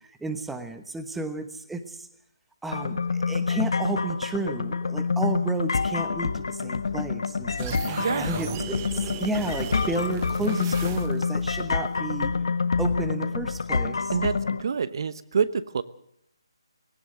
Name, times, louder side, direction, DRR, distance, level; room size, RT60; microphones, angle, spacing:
voice 1, 0.2-2.1 2.6-12.3 12.8-14.1, right 2 dB, 5° right, 8 dB, 1.1 m, -32 dB
sound 1, 2.7-14.6, left 5 dB, 65° left, 1.4 m, -27 dB
sound 2, 7.6-11.4, right 10 dB, 25° right, 1.1 m, -37 dB
voice 2, 14.1-15.8, right 6 dB, 55° right, 15 dB, 1.0 m, -27 dB
19.5 x 17.5 x 7.8 m, 0.70 s
figure-of-eight pair, 155°, 3 cm